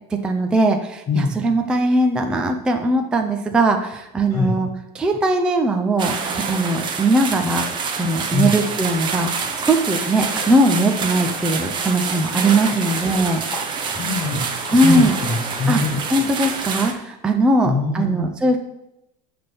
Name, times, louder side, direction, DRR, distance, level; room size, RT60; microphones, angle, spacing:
voice 1, 0.1-4.7 4.9-7.7 7.9-9.3 9.7-13.4 14.7-15.2 15.7-15.8 16.1-18.6, right 1 dB, 5° right, 4 dB, 0.3 m, -19 dB
sound 1, 6.0-16.9, right 5 dB, 20° right, 0.8 m, -27 dB
voice 2, 12.8-16.0 17.6-18.3, left 3 dB, 20° left, -2 dB, 1.0 m, -24 dB
10.0 x 3.4 x 6.9 m, 0.86 s
supercardioid pair, 170°, 21 cm